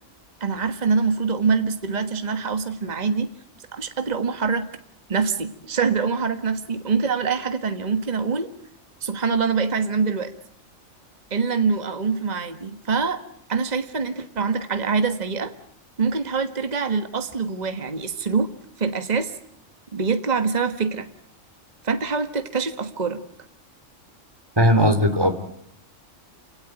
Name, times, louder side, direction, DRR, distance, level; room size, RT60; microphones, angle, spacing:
voice 1, 0.4-3.3 3.7-4.7 5.1-8.5 9.0-10.3 11.3-13.2 13.5-15.5 16.0-18.5 18.8-19.3 19.9-21.1 21.8-23.2, right 5 dB, 35° right, 8 dB, 1.5 m, -24 dB
voice 2, 24.6-25.3, equal, 20° right, 8 dB, 2.8 m, -17 dB
28.0 x 18.0 x 9.2 m, 0.70 s
omnidirectional pair, 1.3 m